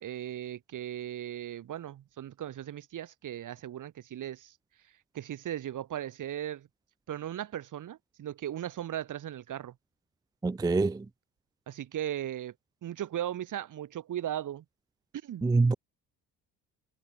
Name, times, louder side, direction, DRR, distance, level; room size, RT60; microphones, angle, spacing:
voice 1, 0.0-4.5 5.1-6.7 7.1-9.7 11.7-12.5 12.8-14.6 15.2-15.4, right 11 dB, 50° right, 1.2 m, -37 dB
voice 2, 10.4-11.1 15.4-15.7, right 3 dB, 10° right, 0.5 m, -25 dB
cardioid pair, 85°, 39 cm